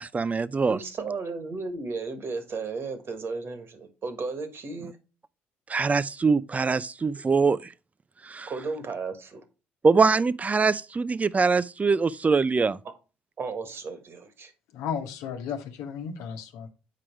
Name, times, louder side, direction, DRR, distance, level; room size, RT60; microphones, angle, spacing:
voice 1, 0.0-0.8 5.7-7.6 8.2-8.5 9.8-12.8, right 4 dB, 25° right, 0.5 m, -23 dB
voice 2, 0.7-5.0 8.5-9.4 13.4-14.5, right 4 dB, 50° right, 1.6 m, -34 dB
voice 3, 14.7-16.7, left 7 dB, 75° left, 1.1 m, -34 dB
7.7 x 4.9 x 4.5 m
hypercardioid pair, 55°, 5 cm